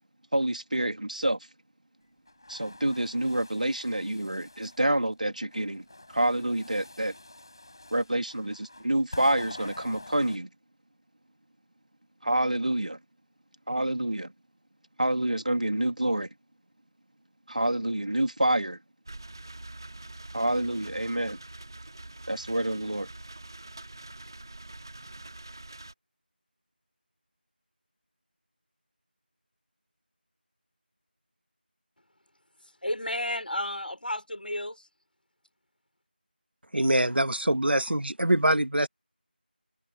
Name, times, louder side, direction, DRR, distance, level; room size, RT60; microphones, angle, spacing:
voice 1, 0.3-1.4 2.5-7.1 7.9-10.5 12.2-13.0 13.7-14.3 15.0-16.3 17.5-18.8 20.3-21.4 22.3-23.1, right 1 dB, 45° right, 2.7 m, -27 dB
sound 1, 2.3-4.9 5.5-10.4, left 2 dB, 25° left, 5.3 m, -47 dB
sound 2, 19.1-25.9, right 2 dB, 25° right, 2.6 m, -45 dB
voice 2, 32.8-34.8, left 1 dB, 60° left, 3.7 m, -32 dB
voice 3, 36.7-38.9, right 1 dB, 75° right, 1.5 m, -24 dB
figure-of-eight pair, 180°, 6 cm